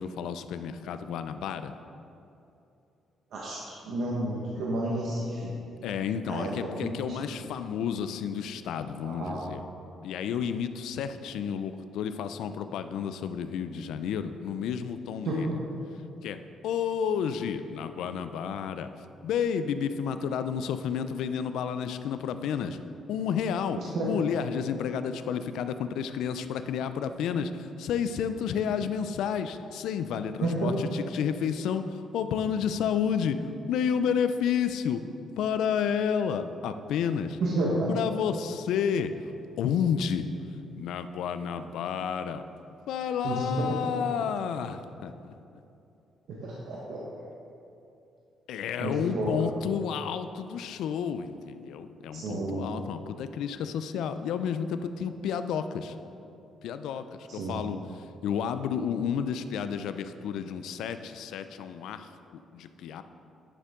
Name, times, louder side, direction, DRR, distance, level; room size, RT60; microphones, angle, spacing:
voice 1, 0.0-1.7 5.8-9.6 10.0-15.5 16.2-18.9 19.2-22.8 23.1-35.0 35.4-37.4 37.9-39.1 39.6-40.3 40.7-42.4 42.9-45.3 48.5-55.9 56.6-63.0, left 7 dB, 85° left, 10 dB, 0.4 m, -31 dB
voice 2, 3.9-5.5 6.3-6.5 6.8-6.9 7.3-7.4 9.0-9.5 15.2-15.5 23.9-24.1 30.4-30.7 37.4-37.9 43.2-43.8 46.3-47.2 48.8-49.3 52.1-52.6 57.3-57.6, right 2 dB, 75° right, -5 dB, 1.2 m, -31 dB
9.8 x 6.8 x 3.7 m, 2.8 s
cardioid pair, 90°, 0 cm